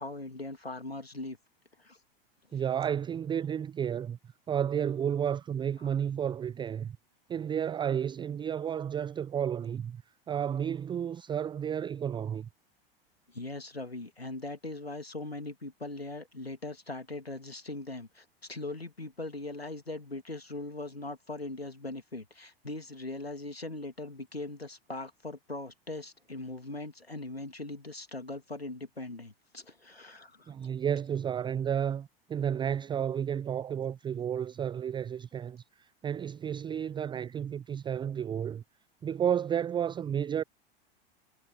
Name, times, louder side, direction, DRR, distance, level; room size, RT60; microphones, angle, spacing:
voice 1, 0.0-1.4 1.8-2.0 2.5-2.6 5.8-5.9 13.3-30.5, left 2 dB, 90° left, 3.0 m, -40 dB
voice 2, 2.5-4.2 4.5-7.0 7.3-10.0 10.3-12.5 30.5-38.6 39.0-40.4, right 8 dB, 15° right, 0.6 m, -32 dB
figure-of-eight pair, 85°, 30 cm